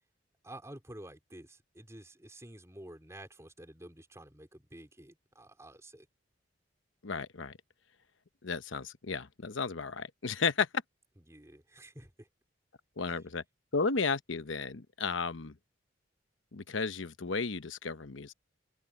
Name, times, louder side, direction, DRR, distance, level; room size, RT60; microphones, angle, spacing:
voice 1, 0.4-6.1 11.3-12.3 13.1-13.2, right 1 dB, 15° right, 4.3 m, -50 dB
voice 2, 7.0-7.6 8.4-10.7 13.0-13.4 13.7-15.6 16.5-18.3, left 4 dB, 85° left, 1.0 m, -33 dB
open air
head